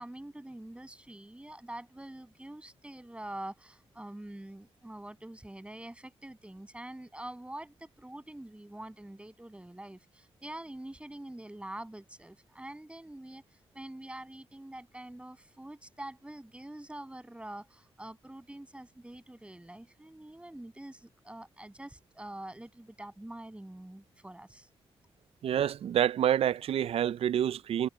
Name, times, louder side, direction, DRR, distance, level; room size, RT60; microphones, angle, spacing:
voice 1, 0.0-13.4 13.7-24.7, right 1 dB, 10° right, 7.5 m, -45 dB
voice 2, 25.4-27.9, right 10 dB, 80° right, 0.4 m, -27 dB
cardioid pair, 90°, 10 cm